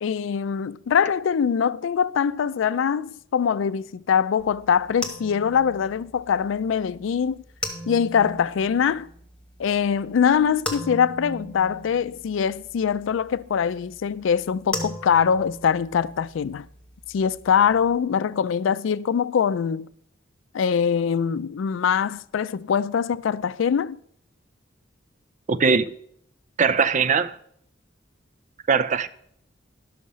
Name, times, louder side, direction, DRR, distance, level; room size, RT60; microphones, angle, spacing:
voice 1, 0.0-7.4 7.9-9.1 9.6-16.7 17.1-19.9 20.5-24.0, left 7 dB, 85° left, 0.4 m, -23 dB
sound 1, 4.4-18.0, left 1 dB, 5° left, 1.2 m, -39 dB
voice 2, 25.5-25.9 26.6-27.4 28.7-29.1, right 5 dB, 40° right, 0.5 m, -20 dB
11.0 x 6.4 x 5.5 m
head